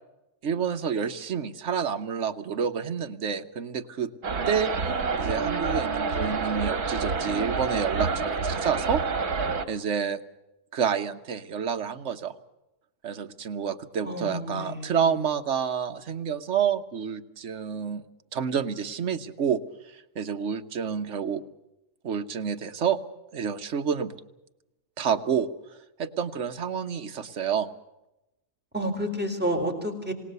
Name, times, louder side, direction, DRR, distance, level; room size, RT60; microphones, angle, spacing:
voice 1, 0.4-4.1 4.5-4.7 5.2-9.0 9.7-10.2 10.7-12.3 13.0-18.0 18.3-19.6 19.9-21.4 22.0-23.0 23.3-24.1 25.0-25.5 26.0-27.7, right 7 dB, 50° right, 6 dB, 1.4 m, -28 dB
sound 1, 4.2-9.6, right 4 dB, 75° right, 1.9 m, -28 dB
voice 2, 14.0-15.1 28.7-30.1, equal, 5° right, 3 dB, 4.0 m, -30 dB
28.0 x 18.0 x 6.8 m, 0.94 s
omnidirectional pair, 1.6 m